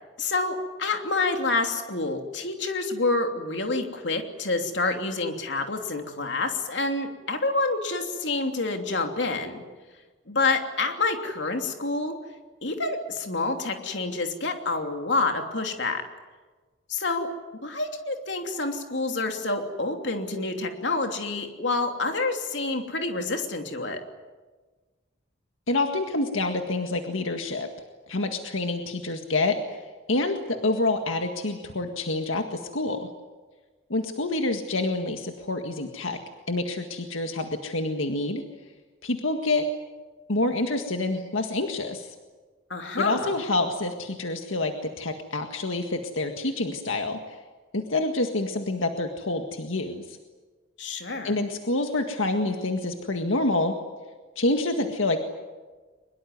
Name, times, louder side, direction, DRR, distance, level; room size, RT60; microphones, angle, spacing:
voice 1, 0.2-9.6 10.3-12.1 12.6-16.0 16.9-17.3 17.6-24.0 42.7-43.3 50.8-51.3, left 3 dB, 65° left, 4 dB, 3.0 m, -28 dB
voice 2, 25.7-27.7 28.1-29.8 30.1-33.1 33.9-36.2 36.5-38.4 39.0-39.7 40.3-42.1 43.0-47.2 47.7-50.2 51.2-53.7 54.4-55.2, left 2 dB, 85° left, 5 dB, 1.8 m, -27 dB
23.5 x 22.0 x 9.5 m, 1.3 s
head